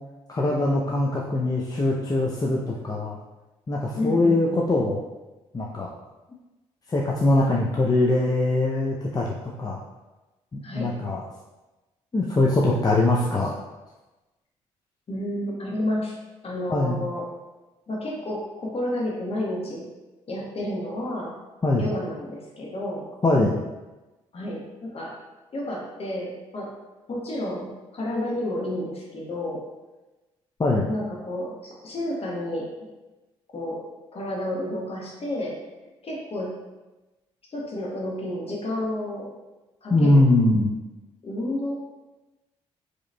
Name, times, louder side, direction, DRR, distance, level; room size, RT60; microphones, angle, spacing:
voice 1, 0.3-3.2 3.7-5.0 5.5-5.9 6.9-9.8 10.5-11.2 12.1-13.6 16.7-17.0 21.6-21.8 23.2-23.6 30.6-30.9 39.9-40.7, left 2 dB, 25° left, -3 dB, 0.5 m, -22 dB
voice 2, 4.0-4.7 10.6-10.9 15.1-16.1 16.4-17.3 17.9-19.8 20.3-21.3 21.8-23.1 24.3-25.1 25.5-26.7 27.1-29.6 30.9-32.6 33.5-33.8 34.1-35.5 36.0-36.5 37.5-39.3 39.8-40.2 41.2-41.8, left 1 dB, 45° left, -3 dB, 1.2 m, -30 dB
4.7 x 2.9 x 2.2 m, 1.1 s
hypercardioid pair, 45°, 14 cm